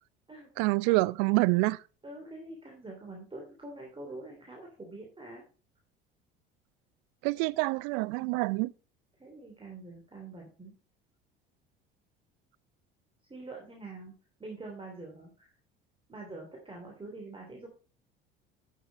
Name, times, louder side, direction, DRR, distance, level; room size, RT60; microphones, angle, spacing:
voice 1, 0.6-1.8 7.2-8.7, right 23 dB, 60° right, 0.5 m, -26 dB
voice 2, 2.0-5.4 9.2-10.7 13.3-14.1 14.4-15.5 16.1-17.7, right 2 dB, 20° right, 3.0 m, -45 dB
11.0 x 6.5 x 4.1 m
figure-of-eight pair, 60°, 29 cm